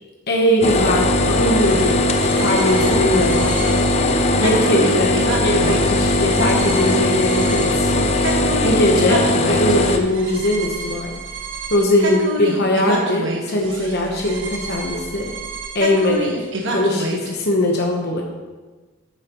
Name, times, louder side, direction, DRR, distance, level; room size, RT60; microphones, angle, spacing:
voice 1, 0.3-3.9 4.4-8.1 8.6-11.1 11.7-15.3 15.7-16.3 16.7-18.2, left 1 dB, 55° left, 0 dB, 1.0 m, -20 dB
sound 1, 0.6-10.0, left 2 dB, 35° left, 0.7 m, -19 dB
sound 2, 1.6-17.3, right 1 dB, 65° right, 1.4 m, -29 dB
10.5 x 9.3 x 3.1 m, 1.3 s
head